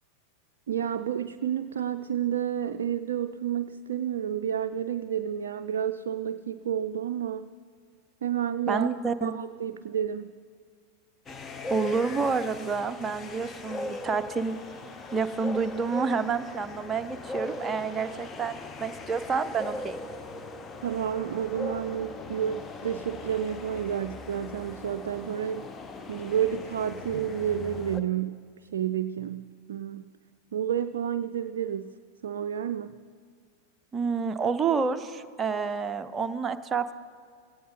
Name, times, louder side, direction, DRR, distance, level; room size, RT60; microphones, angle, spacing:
voice 1, 0.7-7.5 8.2-10.3 20.8-25.7 26.1-28.5 28.7-30.1 30.5-31.9 32.2-33.0, right 9 dB, 60° right, 8 dB, 0.4 m, -30 dB
voice 2, 8.7-9.3 11.7-14.6 15.1-20.0 33.9-36.9, right 5 dB, 20° right, 8 dB, 0.7 m, -29 dB
sound 1, 11.3-28.0, left 2 dB, 20° left, 0.8 m, -40 dB
17.0 x 17.0 x 4.0 m, 2.1 s
figure-of-eight pair, 90°, 0 cm